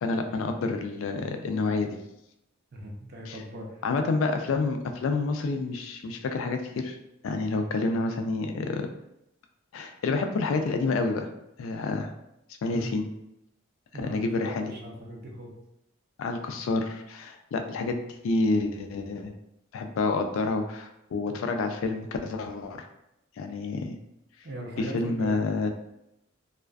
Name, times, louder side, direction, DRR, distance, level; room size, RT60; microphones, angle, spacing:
voice 1, 0.0-2.0 3.3-3.4 3.8-7.0 7.2-8.8 9.7-11.3 11.6-12.1 12.6-13.1 13.9-14.7 16.2-18.0 18.2-19.3 19.7-22.9 23.4-24.0 24.8-25.7, left 3 dB, 75° left, 6 dB, 0.3 m, -28 dB
voice 2, 2.7-3.8 12.7-12.9 13.9-15.5 24.4-25.4, right 1 dB, 50° right, 0 dB, 0.5 m, -39 dB
2.4 x 2.3 x 2.2 m, 0.84 s
head